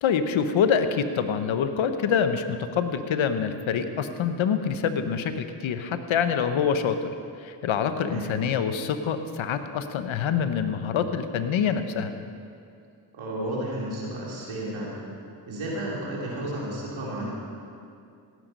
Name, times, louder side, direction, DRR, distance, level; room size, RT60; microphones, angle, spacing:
voice 1, 0.0-6.9 7.4-12.1, left 7 dB, 85° left, 9 dB, 0.9 m, -26 dB
voice 2, 13.1-15.0 15.5-17.3, right 1 dB, 90° right, -4 dB, 3.0 m, -32 dB
17.0 x 9.4 x 5.4 m, 2.4 s
supercardioid pair, 45°, 46 cm